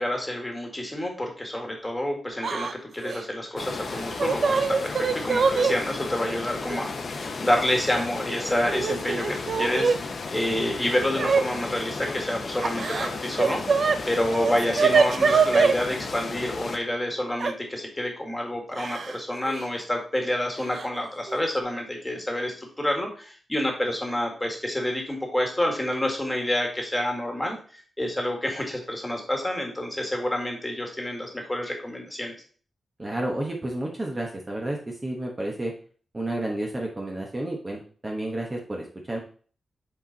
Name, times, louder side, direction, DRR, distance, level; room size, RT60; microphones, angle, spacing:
voice 1, 0.0-27.6 28.0-32.3, left 1 dB, 10° left, 2 dB, 1.8 m, -28 dB
Yell / Crying sobbing, 2.4-2.7 3.0-3.2 3.9-5.7 6.7-6.8 7.8-8.4 8.7-10.0 11.1-11.4 12.6-14.0 14.3-15.7 17.4-17.5 18.8-19.2 19.5-19.6 20.7-20.9 21.3-21.6, right 5 dB, 60° right, 0.5 m, -23 dB
sound 1, 3.6-16.8, left 4 dB, 55° left, 1.0 m, -34 dB
voice 2, 33.0-35.7 36.1-39.2, right 1 dB, 20° right, 0 dB, 1.2 m, -31 dB
7.1 x 4.4 x 4.0 m, 0.43 s
wide cardioid pair, 120°, 0 cm